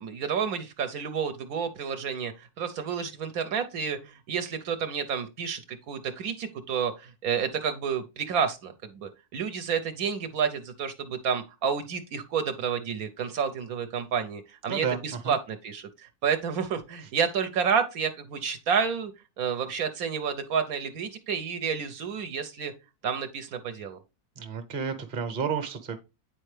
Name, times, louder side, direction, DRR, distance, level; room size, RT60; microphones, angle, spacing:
voice 1, 0.0-5.6 5.9-19.1 19.4-22.7 23.0-24.0, right 6 dB, 75° right, 1.2 m, -30 dB
voice 2, 24.4-26.0, right 6 dB, 40° right, 1.0 m, -31 dB
8.7 x 4.4 x 3.2 m
omnidirectional pair, 1.6 m